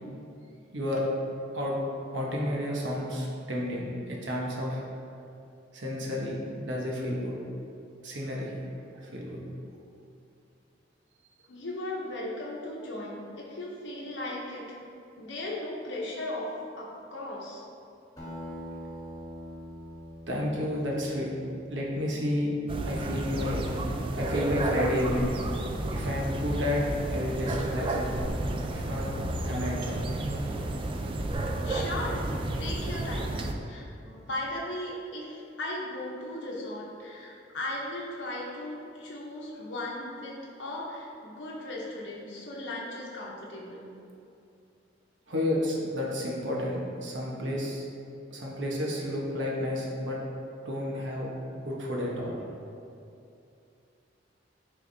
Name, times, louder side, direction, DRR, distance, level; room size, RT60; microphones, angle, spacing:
voice 1, 0.7-1.1 1.5-1.8 2.1-4.8 5.7-7.4 8.0-9.4 20.3-21.3 21.7-22.5 22.8-23.8 24.1-25.3 25.9-28.4 28.7-29.1 29.5-30.1 45.3-47.8 48.3-50.2 50.6-52.4, left 1 dB, 80° right, -3 dB, 1.1 m, -31 dB
voice 2, 11.5-14.8 15.1-17.6 31.6-32.3 32.6-43.9, left 1 dB, 75° left, -3 dB, 0.8 m, -37 dB
Acoustic guitar, 18.2-23.0, equal, 20° left, 1.4 m, -44 dB
sound 1, 22.7-33.5, right 1 dB, 30° right, 0.3 m, -31 dB
10.0 x 3.5 x 2.7 m, 2.6 s
head